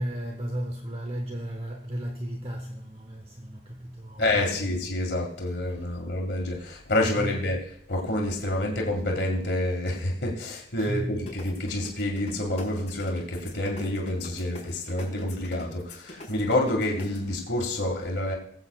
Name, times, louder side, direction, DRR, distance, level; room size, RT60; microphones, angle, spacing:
voice 1, 0.0-4.6 7.2-7.3 10.8-11.1, equal, 35° right, 0.9 m, -34 dB
voice 2, 4.2-7.6 7.9-18.4, left 1 dB, 75° left, 2.0 m, -28 dB
sound 1, 11.3-17.2, left 2 dB, 40° left, 4.6 m, -42 dB
20.5 x 8.0 x 2.4 m
head